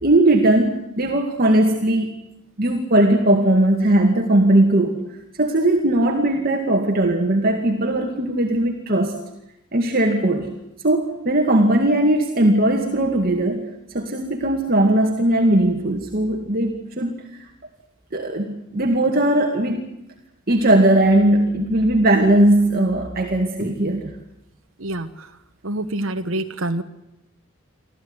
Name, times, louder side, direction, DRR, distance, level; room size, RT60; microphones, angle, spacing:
voice 1, 0.0-2.1 2.6-5.0 5.4-9.2 9.7-10.5 10.8-13.7 13.9-17.2 18.1-19.8 20.5-24.1, right 1 dB, 45° right, 2 dB, 2.3 m, -18 dB
voice 2, 24.8-25.3 25.6-26.8, right 1 dB, 80° right, 6 dB, 1.3 m, -26 dB
25.5 x 15.0 x 9.7 m, 0.86 s
head